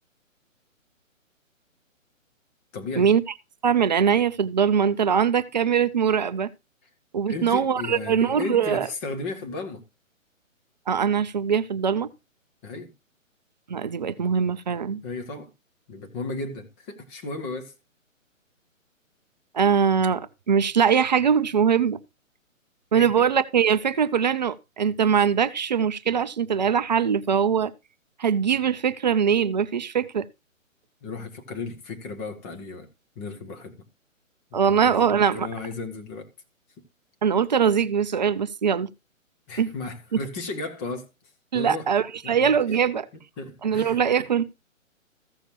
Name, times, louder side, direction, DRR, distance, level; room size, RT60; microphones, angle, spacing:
voice 1, 2.7-3.1 7.3-9.8 12.6-12.9 15.0-15.5 15.9-17.7 22.9-23.2 31.0-32.9 33.2-33.8 34.5-36.3 39.5-41.1 41.5-41.9 42.2-42.5 43.4-44.0, left 3 dB, 10° left, 0.6 m, -34 dB
voice 2, 3.6-6.5 7.1-8.9 10.9-12.1 13.7-15.0 19.5-22.0 22.9-27.7 28.2-30.3 34.5-35.5 37.2-38.9 39.6-39.7 41.5-43.1 43.6-44.4, right 7 dB, 35° right, 0.5 m, -22 dB
15.0 x 6.6 x 2.9 m
figure-of-eight pair, 140°, 40 cm